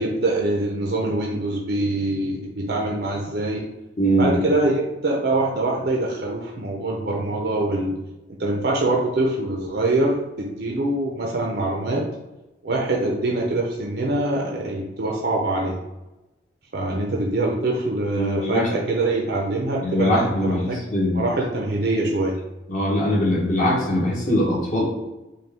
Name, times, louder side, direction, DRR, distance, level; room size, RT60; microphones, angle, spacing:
voice 1, 0.0-3.6 4.2-8.0 8.4-12.0 12.6-15.8 16.7-20.8 21.1-22.4, right 2 dB, 55° right, -1 dB, 0.6 m, -24 dB
voice 2, 4.0-4.3 18.1-18.7 19.8-21.2 22.7-24.9, equal, 45° left, -4 dB, 1.0 m, -21 dB
5.2 x 2.3 x 3.4 m, 1.0 s
head